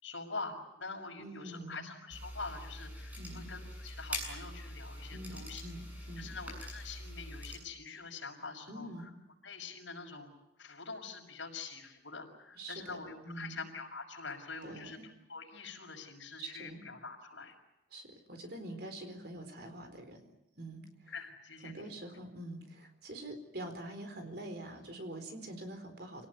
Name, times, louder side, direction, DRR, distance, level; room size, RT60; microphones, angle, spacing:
voice 1, 0.0-5.6 6.2-8.9 9.4-10.3 10.6-15.0 15.3-17.5 21.1-21.8, left 4 dB, 80° left, 2 dB, 6.3 m, -45 dB
voice 2, 1.2-1.9 3.2-3.5 5.1-6.4 8.7-9.1 12.5-13.6 14.6-15.1 16.4-16.8 17.9-20.3 20.6-21.1 21.6-26.3, right 1 dB, 55° right, 6 dB, 4.3 m, -45 dB
sound 1, 2.1-7.6, left 1 dB, 10° right, 7.3 m, -44 dB
27.0 x 18.5 x 9.6 m, 0.89 s
head